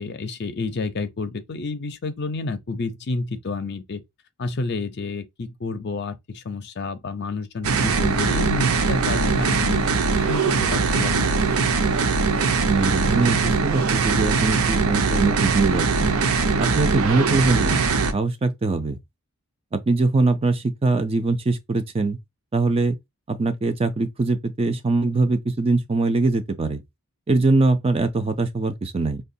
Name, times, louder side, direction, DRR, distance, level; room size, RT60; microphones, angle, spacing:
voice 1, 0.0-4.0 4.4-9.8 10.2-11.4, left 3 dB, 50° left, 0.5 m, -29 dB
sound 1, 7.6-18.1, right 4 dB, 75° right, 0.6 m, -21 dB
voice 2, 12.7-16.1 16.6-17.8 18.1-19.0 19.7-22.2 22.5-22.9 23.3-26.8 27.3-29.2, right 3 dB, 25° right, 0.4 m, -22 dB
5.7 x 2.2 x 2.6 m
head